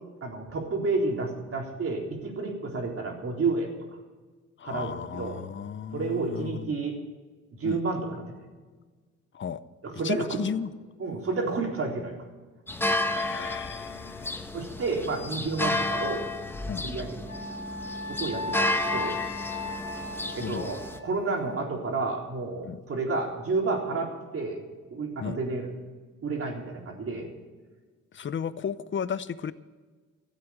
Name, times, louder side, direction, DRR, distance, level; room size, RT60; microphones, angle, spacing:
voice 1, 0.2-3.7 4.6-5.4 5.9-7.0 7.6-8.2 9.8-10.4 11.0-12.2 14.5-16.3 16.8-17.1 18.1-19.2 20.3-24.6 24.9-25.7 26.2-27.3, right 3 dB, 50° right, 0 dB, 3.9 m, -30 dB
voice 2, 4.6-6.7 7.6-7.8 9.3-9.6 10.0-10.7 13.1-14.5 16.7-16.9 20.4-20.7 22.6-22.8 25.2-25.4 28.1-29.5, left 7 dB, 40° left, 15 dB, 0.8 m, -34 dB
sound 1, 12.7-21.0, left 2 dB, 5° left, 1.0 m, -31 dB
Wind instrument woodwind instrument, 17.3-21.6, left 2 dB, 25° left, 2.3 m, -37 dB
14.5 x 8.0 x 8.7 m, 1.4 s
cardioid pair, 90°, 30 cm